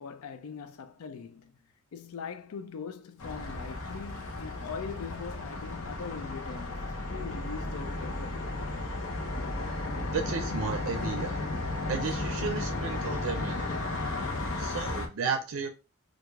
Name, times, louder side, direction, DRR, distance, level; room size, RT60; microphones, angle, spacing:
voice 1, 0.0-1.6 1.9-8.5, left 6 dB, 90° left, 0.4 m, -41 dB
sound 1, 3.2-15.1, left 2 dB, 70° left, 0.8 m, -34 dB
voice 2, 10.1-11.4 11.9-13.7 14.6-15.7, right 5 dB, 65° right, 0.5 m, -33 dB
4.5 x 2.4 x 2.3 m
head